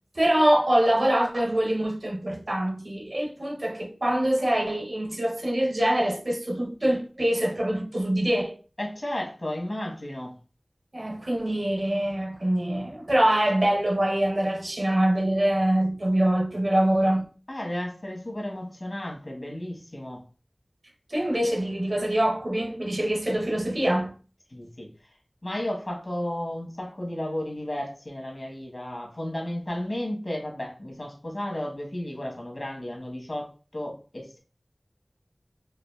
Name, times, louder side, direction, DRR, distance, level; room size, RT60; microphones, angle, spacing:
voice 1, 0.2-8.6 10.9-17.2 21.1-24.1, right 1 dB, 65° right, 0.7 m, -24 dB
voice 2, 8.8-10.3 17.5-20.2 24.5-24.9 25.4-34.4, left 1 dB, 65° left, 1.1 m, -33 dB
4.8 x 2.5 x 2.3 m
wide cardioid pair, 40°, 0 cm